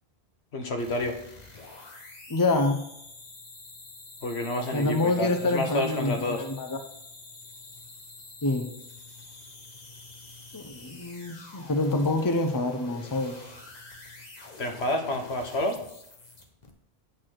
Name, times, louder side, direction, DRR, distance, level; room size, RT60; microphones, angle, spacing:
voice 1, 0.5-1.1 4.2-6.4 14.6-15.8, left 1 dB, 80° left, 4 dB, 1.5 m, -29 dB
sound 1, 0.8-16.7, left 3 dB, 40° left, 1.2 m, -47 dB
voice 2, 2.3-2.9 4.7-6.8 8.4-8.7 10.5-13.4, left 2 dB, 20° left, 5 dB, 0.8 m, -26 dB
8.7 x 4.2 x 6.3 m, 0.77 s
omnidirectional pair, 1.1 m